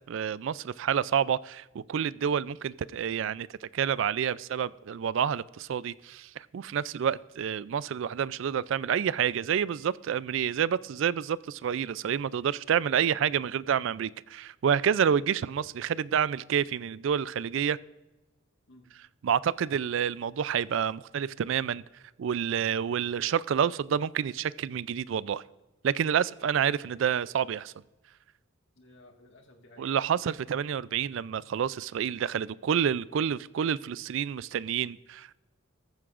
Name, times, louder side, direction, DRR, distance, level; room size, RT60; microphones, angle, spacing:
voice 1, 0.0-17.8 19.2-21.8 22.2-25.4 25.8-27.7 29.8-35.3, right 8 dB, 60° right, 0.3 m, -28 dB
voice 2, 28.8-29.9, left 1 dB, 60° left, 1.7 m, -56 dB
14.5 x 14.0 x 2.5 m
head